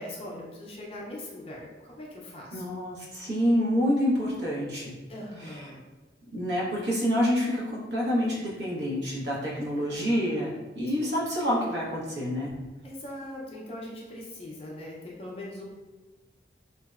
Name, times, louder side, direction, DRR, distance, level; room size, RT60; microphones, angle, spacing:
voice 1, 0.0-2.6 5.1-5.8 9.5-10.5 11.0-11.1 12.8-15.6, left 1 dB, 30° left, -3 dB, 0.4 m, -41 dB
voice 2, 2.5-4.9 5.4-5.6 6.3-7.6 7.9-12.5, equal, 70° right, -5 dB, 0.8 m, -27 dB
2.7 x 2.0 x 2.3 m, 1.2 s
head